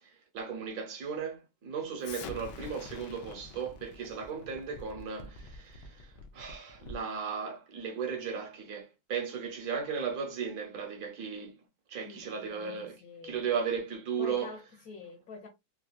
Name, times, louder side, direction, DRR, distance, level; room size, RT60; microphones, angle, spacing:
voice 1, 0.3-11.6 11.9-13.0 13.2-14.6, right 6 dB, 55° right, 1.1 m, -36 dB
Explosion, 2.0-7.1, left 3 dB, 75° left, 1.0 m, -46 dB
voice 2, 12.0-13.4 14.2-15.5, left 4 dB, 55° left, 1.1 m, -47 dB
4.2 x 2.3 x 2.2 m
omnidirectional pair, 2.4 m